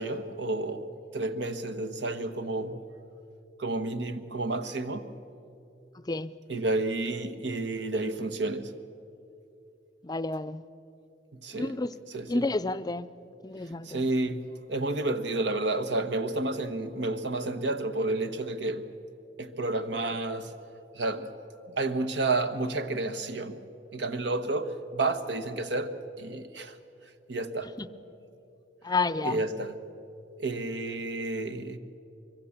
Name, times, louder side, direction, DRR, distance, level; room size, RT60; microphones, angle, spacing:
voice 1, 0.0-2.8 3.6-5.1 6.5-8.7 11.3-11.8 12.1-12.5 13.6-18.9 19.4-20.5 20.9-21.3 21.7-23.6 23.9-26.8 27.3-27.7 29.2-29.8 30.4-31.8, right 2 dB, 75° right, 1.3 m, -31 dB
voice 2, 10.0-10.6 11.5-11.9 12.3-13.1 13.4-14.0 27.8-27.9 28.8-29.4, left 3 dB, 20° left, 0.5 m, -30 dB
25.0 x 22.0 x 7.3 m
head